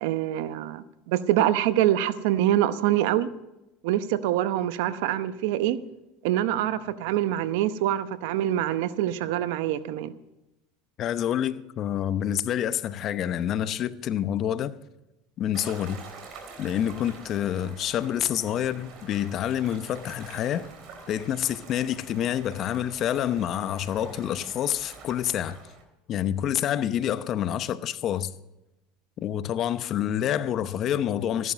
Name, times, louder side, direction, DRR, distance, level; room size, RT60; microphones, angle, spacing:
voice 1, 0.0-3.3 3.8-5.8 6.2-10.1, right 12 dB, 75° right, 0.8 m, -25 dB
voice 2, 11.0-14.7 15.4-16.0 16.6-20.7 21.1-25.6 26.1-28.3 29.2-31.5, left 10 dB, 45° left, 0.8 m, -27 dB
sound 1, 15.5-25.8, right 4 dB, 50° right, 3.4 m, -46 dB
14.5 x 11.0 x 5.2 m
supercardioid pair, 110°, 0 cm